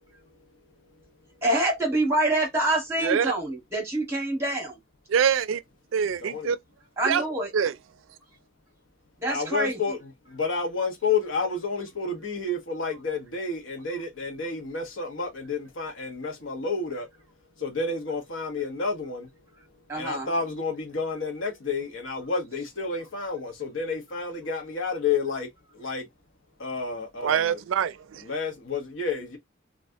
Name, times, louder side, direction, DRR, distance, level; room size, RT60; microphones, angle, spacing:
voice 1, 1.4-4.8 7.0-7.5 9.2-10.0 19.9-20.3, right 1 dB, 15° right, 1.2 m, -26 dB
voice 2, 3.0-3.3 5.1-5.6 5.9-6.6 7.0-7.2 7.5-7.7 27.2-28.2, right 7 dB, 90° right, 0.4 m, -24 dB
voice 3, 6.2-6.5 9.3-10.0 10.3-17.1 17.6-19.3 19.9-25.5 25.7-26.1 26.6-27.6 28.2-29.4, left 4 dB, 85° left, 0.9 m, -30 dB
3.4 x 2.4 x 2.6 m
head